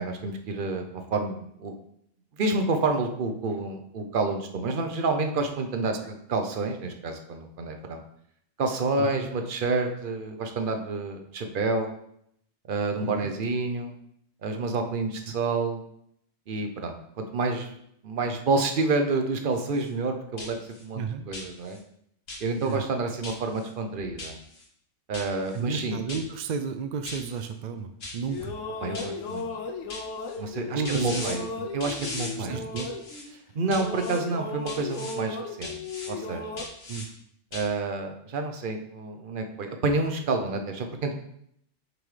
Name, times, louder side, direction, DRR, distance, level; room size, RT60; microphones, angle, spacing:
voice 1, 0.0-1.8 2.4-8.0 8.6-11.9 12.7-13.9 14.4-15.8 16.5-17.7 18.0-21.8 22.4-24.4 25.1-26.0 28.8-29.5 30.4-31.4 31.7-32.6 33.5-35.8 36.1-36.6 37.5-41.2, right 3 dB, 50° right, 5 dB, 0.8 m, -29 dB
voice 2, 9.0-9.3 13.0-13.2 20.9-21.3 22.6-22.8 25.5-28.6 30.8-31.3 31.6-31.7 32.4-32.9 36.9-37.1, right 6 dB, 90° right, 8 dB, 0.4 m, -32 dB
sound 1, 19.5-19.9 20.4-20.8 21.3-21.8 22.3-22.7 23.2-23.7 24.2-24.6 25.1-25.6 26.1-26.5 27.0-27.5 28.0-28.5 28.9-29.4 29.9-30.4 30.8-31.4 31.8-32.3 32.7-33.2 33.7-34.2 34.7-35.2 35.6-36.1 36.6-37.1 37.5-37.7, left 2 dB, 55° left, 1.3 m, -39 dB
sound 2, 28.0-33.4 33.7-36.7, left 3 dB, 85° left, 1.1 m, -36 dB
7.7 x 3.8 x 3.2 m, 0.72 s
omnidirectional pair, 1.3 m